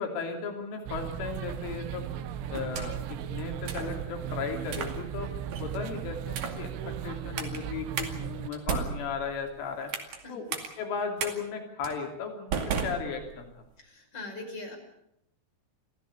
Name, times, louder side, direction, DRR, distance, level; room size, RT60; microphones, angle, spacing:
voice 1, 0.0-2.1 2.5-5.3 5.6-6.7 7.0-9.9 10.3-10.5 10.8-13.5, left 5 dB, 80° left, 3 dB, 5.5 m, -35 dB
sound 1, 0.9-8.5, right 10 dB, 80° right, 3.6 m, -37 dB
sound 2, 2.5-3.1 3.7-3.9 4.7-5.0 5.5-5.8 6.3-6.7 7.4-7.6 8.0-8.1 8.5-10.2 10.5-10.7 11.2-11.3 11.8-12.0 12.5-13.6, right 6 dB, 55° right, 3.6 m, -34 dB
voice 2, 13.8-14.8, left 2 dB, 25° left, 2 dB, 5.7 m, -41 dB
26.5 x 15.5 x 8.7 m, 0.78 s
omnidirectional pair, 5.5 m